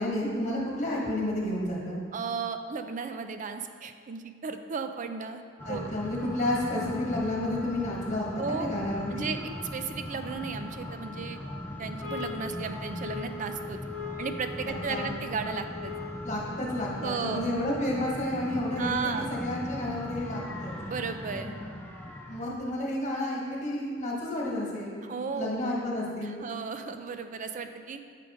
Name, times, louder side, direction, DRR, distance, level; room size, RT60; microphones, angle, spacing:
voice 1, 0.0-2.0 5.6-9.3 14.7-15.1 16.2-20.7 22.3-25.0 25.3-26.4, left 1 dB, 40° left, -3 dB, 1.6 m, -31 dB
voice 2, 2.1-5.4 5.7-5.9 8.4-8.7 9.1-11.4 11.8-13.8 14.2-15.9 17.0-17.5 18.8-19.3 20.9-21.6 25.0-25.5 26.2-28.0, right 5 dB, 40° right, 8 dB, 0.4 m, -34 dB
sound 1, 5.6-22.5, left 1 dB, 10° left, 0.6 m, -39 dB
sound 2, 12.0-16.4, left 5 dB, 70° right, 1.7 m, -40 dB
7.6 x 4.8 x 5.0 m, 2.1 s
head